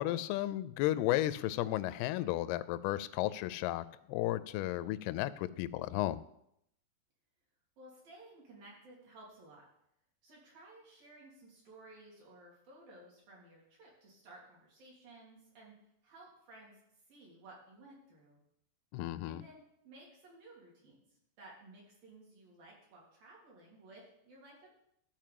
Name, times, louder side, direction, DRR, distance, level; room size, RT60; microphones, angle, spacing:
voice 1, 0.0-6.2 18.9-19.4, left 15 dB, 85° left, 13 dB, 2.3 m, -34 dB
voice 2, 7.8-9.6 10.2-15.8 16.0-16.8 17.1-18.4 19.3-21.0 21.4-24.7, right 2 dB, 55° right, -4 dB, 4.7 m, -56 dB
12.5 x 4.7 x 7.6 m, 0.76 s
omnidirectional pair, 4.9 m